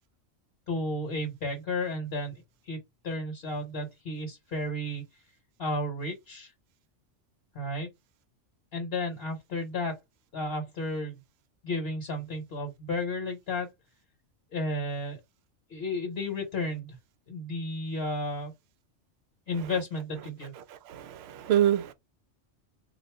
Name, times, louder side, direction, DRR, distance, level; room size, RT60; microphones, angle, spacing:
voice 1, 0.7-2.8 3.0-5.0 5.6-6.5 7.5-7.9 8.7-10.0 10.3-11.2 11.6-13.7 14.5-15.2 15.7-17.0 17.3-18.5 19.5-20.5, left 1 dB, 55° left, 1.2 m, -33 dB
voice 2, 20.9-21.9, right 11 dB, 65° right, 0.8 m, -25 dB
3.7 x 2.4 x 3.3 m
omnidirectional pair, 1.3 m